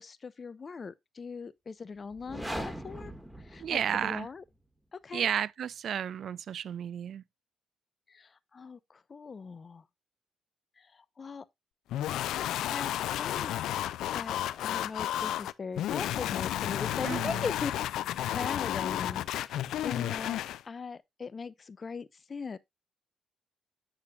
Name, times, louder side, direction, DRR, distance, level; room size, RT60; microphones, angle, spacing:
voice 1, 0.0-3.1 3.4-4.4 4.9-5.3 8.1-9.8 10.8-11.5 12.6-13.5 14.1-17.7 18.3-20.4 20.6-22.6, left 5 dB, 40° left, 0.6 m, -40 dB
sound 1, 2.1-4.3, equal, 5° right, 1.6 m, -40 dB
voice 2, 3.6-4.3 5.1-7.2 17.0-17.5, right 8 dB, 60° right, 0.3 m, -32 dB
sound 2, 11.9-20.6, left 12 dB, 75° left, 0.3 m, -32 dB
8.5 x 6.8 x 2.4 m
hypercardioid pair, 50°, 0 cm